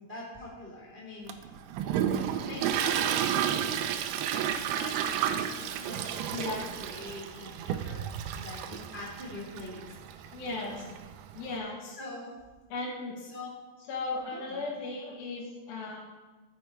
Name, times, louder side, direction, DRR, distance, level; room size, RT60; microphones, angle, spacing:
voice 1, 0.0-3.9 4.3-10.2 10.6-10.7 11.8-12.4 13.1-13.6 14.3-14.6, left 2 dB, 30° right, -4 dB, 1.0 m, -44 dB
Toilet flush, 1.3-11.5, right 9 dB, 80° right, 2.4 m, -32 dB
voice 2, 6.3-6.6 10.3-10.9 11.3-11.8 12.7-13.2 13.9-16.0, left 3 dB, 65° left, -3 dB, 2.9 m, -36 dB
13.5 x 7.4 x 4.4 m, 1.2 s
omnidirectional pair, 4.9 m